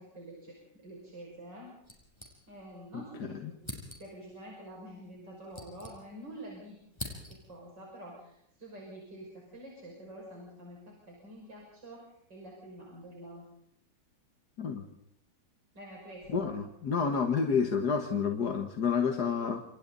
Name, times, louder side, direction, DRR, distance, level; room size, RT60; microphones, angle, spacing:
voice 1, 0.0-1.7 2.5-3.6 4.0-6.8 7.3-13.4 15.7-16.6, right 1 dB, 80° right, -2 dB, 6.9 m, -47 dB
sound 1, 1.8-2.8 3.1-3.2 3.6-4.3 5.1-6.4 6.7-7.7, left 1 dB, 15° left, 5.9 m, -45 dB
voice 2, 2.9-3.5 14.6-14.8 16.3-19.6, left 6 dB, 65° left, 5 dB, 2.1 m, -30 dB
28.5 x 28.0 x 4.1 m, 0.74 s
omnidirectional pair, 1.9 m